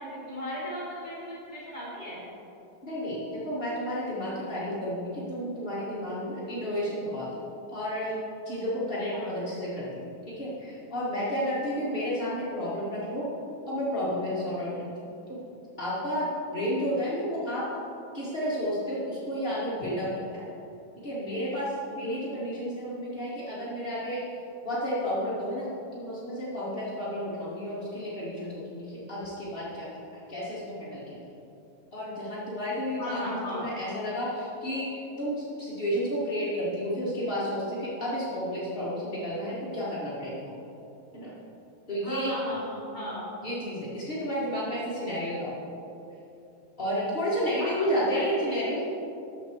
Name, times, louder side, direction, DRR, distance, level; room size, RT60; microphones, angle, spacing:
voice 1, 0.0-2.2 9.1-9.3 22.0-22.3 33.0-33.7 42.0-43.3 47.6-48.7, equal, 15° right, -8 dB, 1.9 m, -36 dB
voice 2, 2.8-7.3 7.7-13.3 13.7-15.4 15.8-17.7 18.1-20.4 21.0-29.9 30.3-31.2 31.9-33.2 33.5-40.5 41.1-41.3 41.9-42.3 43.4-45.5 46.8-48.8, equal, 70° left, -9 dB, 0.5 m, -31 dB
13.0 x 5.0 x 4.5 m, 2.8 s
omnidirectional pair, 3.9 m